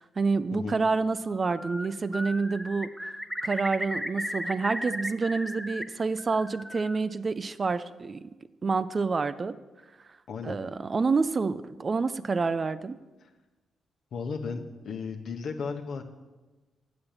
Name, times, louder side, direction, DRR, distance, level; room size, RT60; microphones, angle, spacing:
voice 1, 0.0-3.2 3.4-8.2 8.6-9.6 10.4-13.0, right 4 dB, 40° right, 14 dB, 0.4 m, -28 dB
Bird, 1.3-1.9 2.1-5.8 6.2-7.0, equal, ahead, 0.7 m, -35 dB
voice 2, 10.3-10.6 13.2-13.3 14.1-16.0, left 5 dB, 65° left, 5 dB, 0.9 m, -35 dB
7.5 x 6.2 x 7.2 m, 1.2 s
hypercardioid pair, 40°, 0 cm